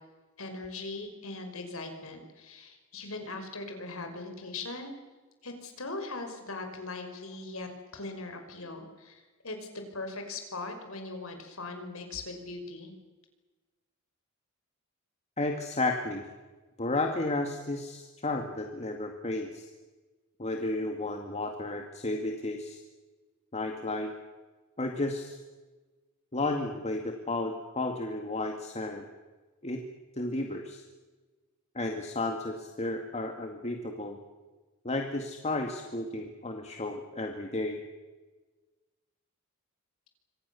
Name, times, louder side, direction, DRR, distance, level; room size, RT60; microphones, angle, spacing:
voice 1, 0.4-4.9 5.4-12.9, left 3 dB, 70° left, 5 dB, 5.6 m, -40 dB
voice 2, 15.4-16.2 16.8-19.7 20.4-22.8 23.5-24.1 24.8-25.4 26.3-29.1 29.6-29.8 30.2-30.8 31.7-34.2 34.8-37.8, left 2 dB, 30° left, 3 dB, 2.2 m, -33 dB
28.0 x 25.0 x 7.1 m, 1.3 s
head